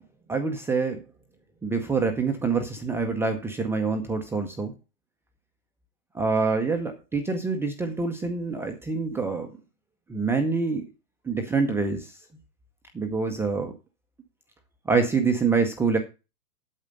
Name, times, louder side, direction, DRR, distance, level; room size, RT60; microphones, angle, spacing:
voice 1, 0.3-1.0 1.6-4.7 6.1-9.5 10.1-10.8 11.3-12.1 12.9-13.7 14.9-16.0, right 4 dB, 5° right, 4 dB, 0.6 m, -26 dB
8.8 x 7.3 x 5.3 m, 0.29 s
hypercardioid pair, 130°, 49 cm